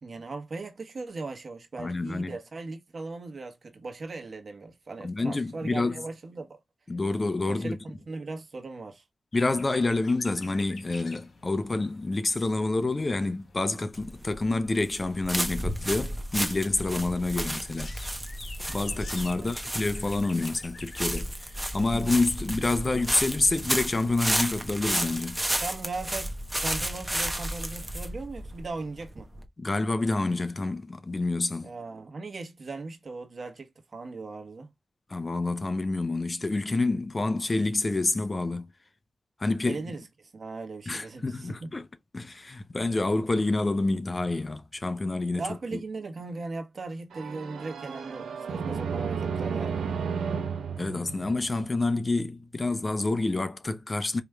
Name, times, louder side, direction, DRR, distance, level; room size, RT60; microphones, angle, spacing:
voice 1, 0.0-6.6 7.5-9.0 19.3-19.5 25.5-29.3 31.6-34.7 39.6-41.7 45.3-49.8, right 3 dB, 55° right, 1.2 m, -38 dB
voice 2, 1.8-2.4 5.0-6.0 6.9-7.8 9.3-17.9 18.7-25.4 29.6-31.7 35.1-38.7 39.4-39.8 40.9-41.9 42.1-45.4 45.7-45.8 50.8-54.2, left 2 dB, 35° left, 0.6 m, -28 dB
sound 1, 9.3-22.7, left 3 dB, 70° left, 1.2 m, -50 dB
sound 2, 13.9-29.5, right 1 dB, 10° right, 0.9 m, -32 dB
sound 3, 47.1-51.9, right 6 dB, 85° right, 0.6 m, -33 dB
4.8 x 3.0 x 2.3 m
cardioid pair, 50°, 0 cm